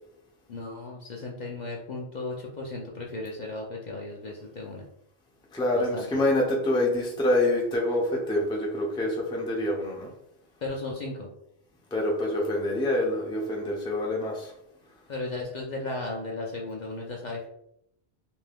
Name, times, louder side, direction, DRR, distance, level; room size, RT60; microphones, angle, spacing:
voice 1, 0.5-4.8 5.8-6.1 10.6-11.3 15.1-17.5, left 2 dB, 55° left, -1 dB, 0.5 m, -35 dB
voice 2, 5.5-10.1 11.9-14.5, left 1 dB, 5° left, -2 dB, 0.4 m, -26 dB
2.6 x 2.2 x 3.3 m, 0.76 s
omnidirectional pair, 1.1 m